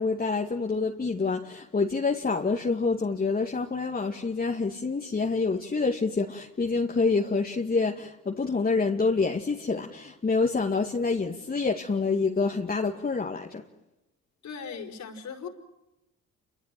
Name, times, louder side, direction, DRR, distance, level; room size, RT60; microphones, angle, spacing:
voice 1, 0.0-13.6, left 4 dB, 30° left, 2.3 m, -27 dB
voice 2, 14.4-15.5, left 6 dB, 65° left, 5.2 m, -38 dB
28.5 x 25.0 x 7.8 m
cardioid pair, 90°, 30 cm